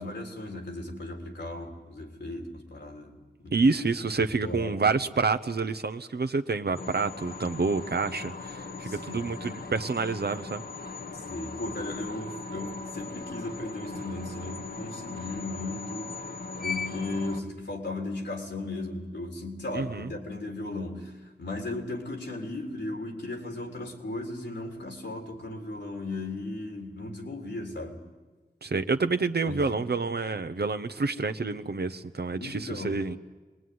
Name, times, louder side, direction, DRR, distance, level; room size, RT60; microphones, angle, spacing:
voice 1, 0.0-3.5 4.2-4.9 8.8-9.3 11.1-16.2 16.6-28.0 29.4-29.7 32.3-33.1, left 2 dB, 80° left, 2 dB, 3.9 m, -36 dB
voice 2, 3.5-10.6 19.7-20.1 28.6-33.2, right 4 dB, 65° right, 9 dB, 1.1 m, -28 dB
sound 1, 6.7-17.4, left 4 dB, 60° left, 1.5 m, -39 dB
26.0 x 20.5 x 9.6 m, 1.3 s
cardioid pair, 45°, 18 cm